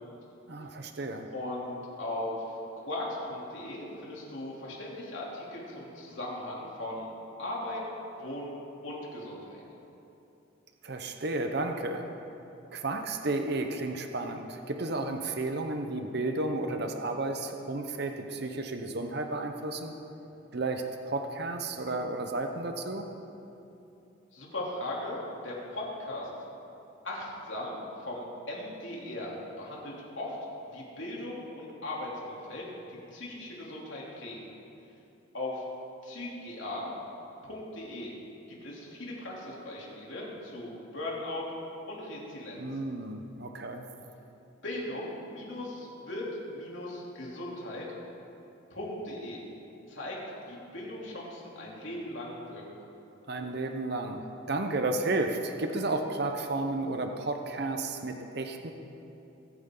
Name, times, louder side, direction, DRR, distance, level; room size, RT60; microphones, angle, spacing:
voice 1, 0.5-1.3 10.8-12.1 12.7-19.9 20.5-23.1 42.6-43.9 53.3-58.7, right 2 dB, 55° right, 5 dB, 0.9 m, -32 dB
voice 2, 1.3-2.4 2.8-7.1 7.4-7.8 8.2-8.5 8.8-9.6 24.3-26.3 27.0-27.8 28.0-30.4 30.6-34.5 35.3-35.6 36.0-36.9 37.4-38.1 38.5-41.5 41.9-42.6 44.6-46.2 46.5-47.9 48.7-49.4 49.9-50.2 50.4-52.6, left 1 dB, 70° left, -4 dB, 3.3 m, -38 dB
24.0 x 9.4 x 3.9 m, 2.9 s
head